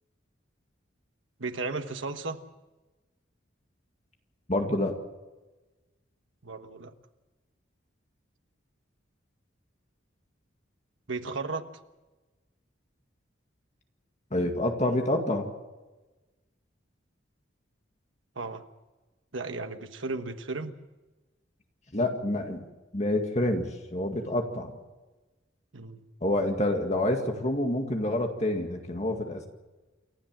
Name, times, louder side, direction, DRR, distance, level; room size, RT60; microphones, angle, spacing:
voice 1, 1.4-2.4 6.4-6.9 11.1-11.7 18.3-18.6 19.3-20.7 25.7-26.1, right 3 dB, 80° right, 7 dB, 1.4 m, -34 dB
voice 2, 4.5-5.0 14.3-15.5 21.9-22.7 22.9-24.7 26.2-29.5, left 1 dB, 35° left, 4 dB, 2.1 m, -27 dB
28.5 x 13.0 x 7.6 m, 1.2 s
head